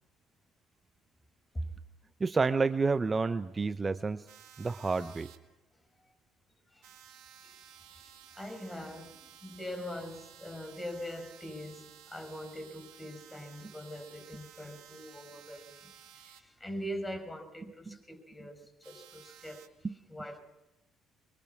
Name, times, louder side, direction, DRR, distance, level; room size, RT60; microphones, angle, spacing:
voice 1, 2.2-4.2 4.6-5.3 17.9-18.0 19.8-19.9, right 4 dB, 30° right, 0.8 m, -29 dB
sound 1, 4.3-5.4 6.8-16.4 18.8-19.7, right 11 dB, 70° right, 1.9 m, -55 dB
voice 2, 7.4-19.6 20.1-20.4, equal, 15° left, 6.2 m, -42 dB
25.5 x 23.5 x 5.9 m
hypercardioid pair, 55°, 0 cm